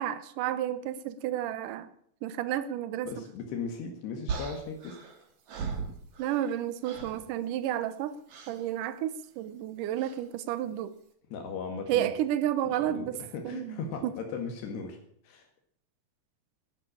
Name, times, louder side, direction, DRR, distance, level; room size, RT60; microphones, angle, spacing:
voice 1, 0.0-1.9 2.2-3.2 6.2-8.2 8.5-11.0 11.9-13.2 13.4-14.2, right 11 dB, 75° right, 13 dB, 2.0 m, -31 dB
voice 2, 3.0-5.0 11.3-12.1 12.8-15.0 15.2-15.5, left 5 dB, 75° left, 4 dB, 3.9 m, -37 dB
sound 1, 4.3-6.6 6.8-7.3 8.3-8.6 10.0-10.2, right 5 dB, 50° right, 2.9 m, -38 dB
12.5 x 11.5 x 8.6 m, 0.66 s
omnidirectional pair, 4.9 m